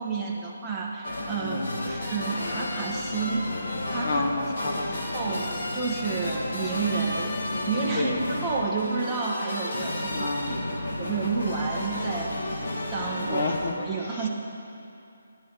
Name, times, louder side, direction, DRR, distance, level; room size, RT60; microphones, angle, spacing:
voice 1, 0.0-4.3 5.1-5.4 5.7-7.4 7.7-10.3 11.0-12.6 12.9-13.4 13.9-14.3, right 4 dB, 5° right, -7 dB, 1.3 m, -30 dB
sound 1, 1.0-13.7, left 1 dB, 60° left, 2.4 m, -32 dB
voice 2, 1.4-2.1 4.0-5.1 6.2-6.4 7.9-8.2 10.1-10.6 11.0-11.1 13.2-14.3, left 2 dB, 40° left, 3 dB, 1.1 m, -31 dB
13.0 x 10.5 x 7.5 m, 2.6 s
hypercardioid pair, 170°, 0 cm